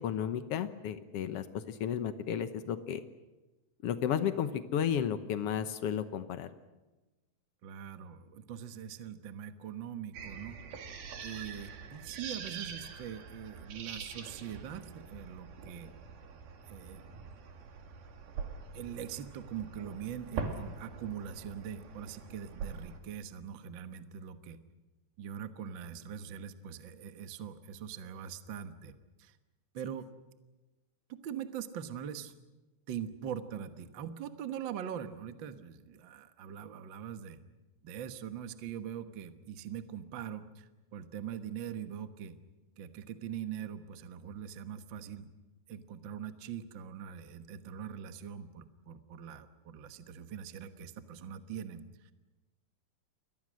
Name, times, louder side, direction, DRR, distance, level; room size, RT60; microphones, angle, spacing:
voice 1, 0.0-3.0 3.8-6.5, left 9 dB, 80° left, 10 dB, 1.3 m, -33 dB
voice 2, 7.6-10.6 11.2-15.9 16.7-17.3 18.7-24.6 25.2-29.4 29.7-30.1 31.1-32.3 32.9-37.4 37.8-42.4 42.8-45.3 45.7-52.1, right 8 dB, 60° right, 9 dB, 1.2 m, -42 dB
sound 1, 10.1-23.0, right 5 dB, 85° right, 4.2 m, -44 dB
29.5 x 23.0 x 6.4 m, 1.1 s
omnidirectional pair, 4.2 m